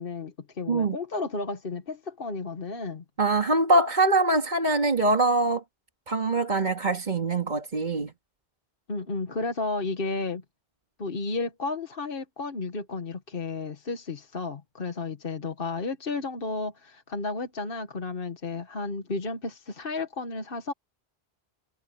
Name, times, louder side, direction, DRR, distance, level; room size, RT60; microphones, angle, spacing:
voice 1, 0.0-3.0 8.9-10.4 11.0-20.7, left 3 dB, 60° left, 1.6 m, -32 dB
voice 2, 3.2-5.6 6.1-8.1, right 2 dB, 45° right, 2.0 m, -23 dB
omnidirectional pair, 1.1 m